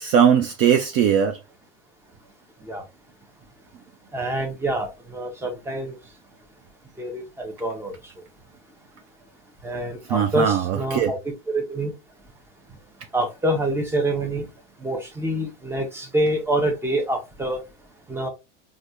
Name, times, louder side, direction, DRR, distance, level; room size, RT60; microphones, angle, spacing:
voice 1, 0.0-1.4 10.1-11.1, right 8 dB, 40° right, 0.5 m, -19 dB
voice 2, 4.1-5.9 7.0-7.9 9.6-11.2 11.5-11.9 13.1-14.5 14.8-17.6 18.1-18.3, right 1 dB, 5° right, 0.8 m, -26 dB
3.2 x 2.5 x 2.7 m
supercardioid pair, 120°, 36 cm